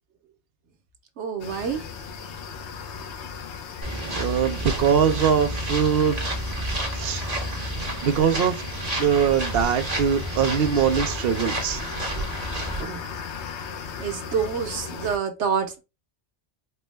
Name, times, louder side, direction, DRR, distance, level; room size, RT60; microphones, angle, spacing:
voice 1, 1.2-1.8 12.8-13.2 14.0-15.8, right 6 dB, 90° right, 1.2 m, -27 dB
sound 1, 1.4-15.2, left 6 dB, 75° left, 0.9 m, -37 dB
sound 2, 3.8-12.8, right 1 dB, 35° right, 1.1 m, -30 dB
voice 2, 4.1-6.3 7.0-7.2 8.0-8.6 9.0-11.8, right 7 dB, 60° right, 0.8 m, -22 dB
4.4 x 2.1 x 3.3 m
omnidirectional pair, 1.2 m